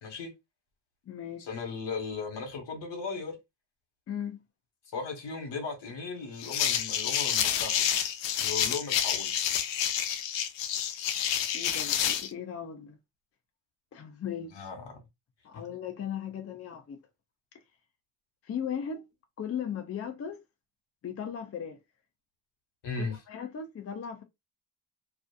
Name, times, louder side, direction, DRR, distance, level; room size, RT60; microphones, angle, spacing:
voice 1, 0.0-0.3 1.5-3.4 4.9-7.8 8.4-9.3 14.5-15.0 22.8-23.2, left 4 dB, 70° left, 1.3 m, -37 dB
voice 2, 1.1-1.6 4.1-4.4 8.6-8.8 11.5-13.0 13.9-14.7 15.4-17.0 18.4-19.0 19.4-20.4 21.0-21.8 23.0-24.2, left 8 dB, 35° left, 0.5 m, -37 dB
sound 1, 6.4-12.3, left 10 dB, 90° left, 0.5 m, -29 dB
2.6 x 2.4 x 2.3 m
cardioid pair, 110°, 43 cm